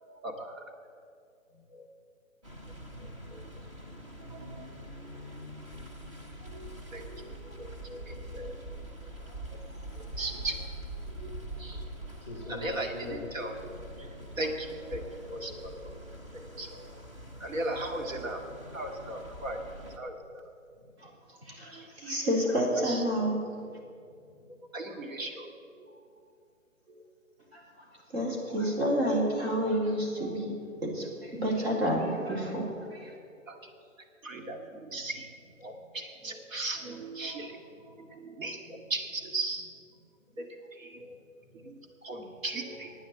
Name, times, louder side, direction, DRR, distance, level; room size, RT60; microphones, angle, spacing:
voice 1, 0.1-0.6 1.7-1.9 3.3-3.5 4.3-4.7 6.5-8.5 10.0-10.6 11.2-11.3 11.6-11.8 12.5-14.1 14.4-15.9 16.3-16.9 17.4-18.4 18.7-19.6 20.0-20.4 21.7-21.9 22.8-23.0 24.7-25.5 25.8-25.9 33.5-33.6 34.2-35.3 35.6-37.6 37.9-39.7 40.4-41.2 41.5-42.9, right 2 dB, 75° right, 3 dB, 2.3 m, -38 dB
sound 1, 2.4-20.0, right 1 dB, 25° right, 0.9 m, -44 dB
voice 2, 12.2-14.4 15.1-15.3 18.3-18.6 20.8-20.9 23.5-24.5 30.7-30.8 35.6-35.8 36.5-36.7 37.3-38.1 38.6-38.8 39.9-40.0 40.9-41.7 42.2-42.4, left 1 dB, 5° right, -2 dB, 2.2 m, -48 dB
voice 3, 21.5-23.4 27.5-27.6 28.1-30.5 30.8-33.1, equal, 50° right, -3 dB, 3.7 m, -29 dB
12.0 x 9.3 x 7.9 m, 2.4 s
hypercardioid pair, 165°, 40 cm